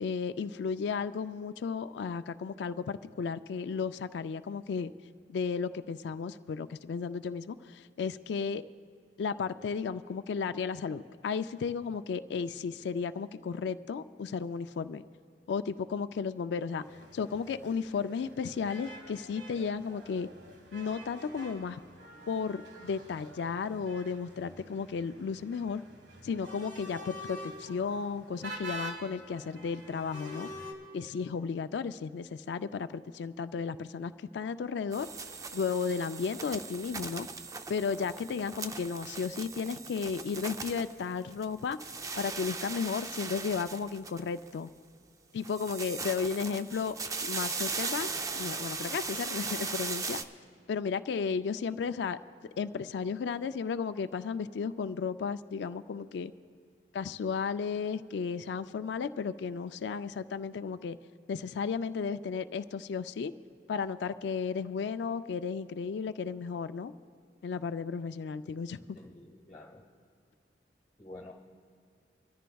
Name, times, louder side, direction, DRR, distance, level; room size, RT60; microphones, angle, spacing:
voice 1, 0.0-4.9 5.3-8.6 9.2-15.0 15.5-16.8 17.1-20.3 20.7-21.8 22.3-25.8 26.2-30.5 30.9-35.1 35.5-37.3 37.7-41.8 42.2-44.7 45.3-47.0 47.2-48.1 48.3-50.2 50.7-52.2 52.6-56.3 56.9-61.0 61.3-63.3 63.7-66.9 67.4-68.8, left 5 dB, 70° left, 12 dB, 0.3 m, -34 dB
sound 1, 16.8-30.7, equal, 85° right, 1.6 m, -47 dB
sound 2, 34.9-41.5 41.7-44.5 45.4-50.2, right 4 dB, 20° right, 0.4 m, -38 dB
voice 2, 68.9-69.8 71.0-71.3, left 2 dB, 25° left, -1 dB, 1.2 m, -49 dB
24.5 x 13.5 x 2.3 m, 2.3 s
head